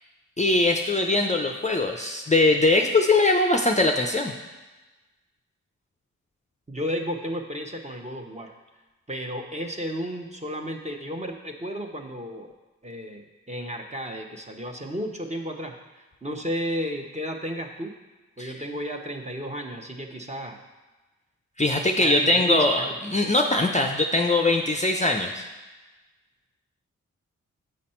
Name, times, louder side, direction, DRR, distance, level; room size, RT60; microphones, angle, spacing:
voice 1, 0.4-4.3 18.4-18.5 21.6-25.4, left 2 dB, 20° left, 2 dB, 0.6 m, -21 dB
voice 2, 6.7-8.5 9.1-12.5 12.8-15.8 16.2-17.9 18.4-20.6 22.0-22.9, equal, 20° right, 3 dB, 1.0 m, -33 dB
7.7 x 4.1 x 4.4 m, 1.2 s
cardioid pair, 45°, 33 cm